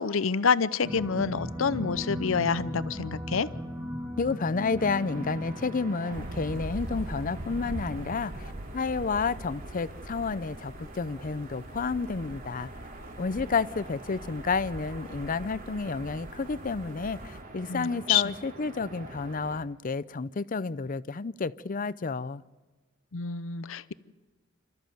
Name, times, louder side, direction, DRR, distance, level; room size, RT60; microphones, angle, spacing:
voice 1, 0.0-3.5 17.7-18.2 23.1-23.9, left 6 dB, 75° left, 0.7 m, -27 dB
sound 1, 0.8-8.9, equal, 10° right, 2.6 m, -38 dB
voice 2, 4.2-12.7 13.2-22.4, left 4 dB, 45° left, 0.6 m, -30 dB
sound 2, 4.8-19.6, right 2 dB, 45° right, 2.7 m, -46 dB
sound 3, 6.1-17.4, right 1 dB, 70° right, 1.5 m, -42 dB
28.5 x 14.0 x 7.8 m
head